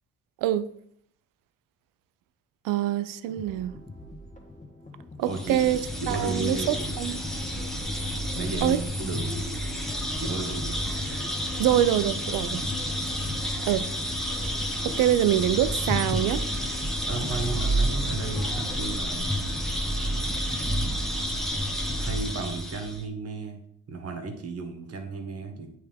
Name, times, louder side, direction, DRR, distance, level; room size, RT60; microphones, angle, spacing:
voice 1, 2.6-3.7 5.2-5.8 6.1-7.2 8.6-8.8 11.6-12.6 13.7-13.8 14.8-16.4, right 12 dB, 80° right, 0.5 m, -25 dB
sound 1, 3.3-21.1, left 1 dB, 25° left, 1.4 m, -45 dB
voice 2, 5.2-5.6 6.0-6.9 8.4-9.4 10.2-10.8 12.4-12.7 17.1-19.5 22.0-23.6 23.9-25.7, right 3 dB, 50° right, 1.3 m, -34 dB
sound 2, 5.3-23.0, equal, ahead, 0.9 m, -30 dB
8.6 x 3.4 x 3.5 m
cardioid pair, 90°, 32 cm